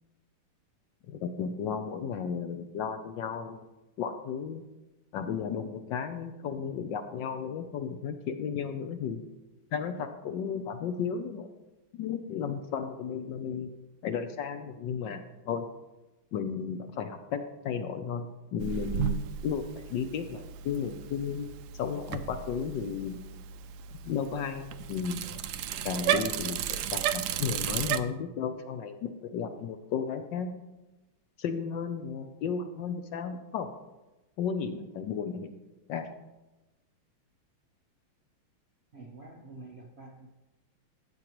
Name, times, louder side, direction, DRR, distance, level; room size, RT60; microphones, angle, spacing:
voice 1, 1.1-3.6 4.0-4.6 5.1-9.2 9.7-11.5 11.9-13.7 14.0-15.2 15.5-15.6 16.3-19.1 19.4-23.2 24.0-25.2 25.8-30.6 31.4-33.7 34.4-35.5 35.9-36.1, left 6 dB, 70° left, 7 dB, 1.2 m, -34 dB
Bicycle, 18.6-28.0, right 9 dB, 85° right, 0.9 m, -34 dB
voice 2, 38.9-40.3, right 3 dB, 50° right, 0 dB, 0.7 m, -47 dB
13.5 x 8.3 x 3.0 m, 1.1 s
omnidirectional pair, 2.3 m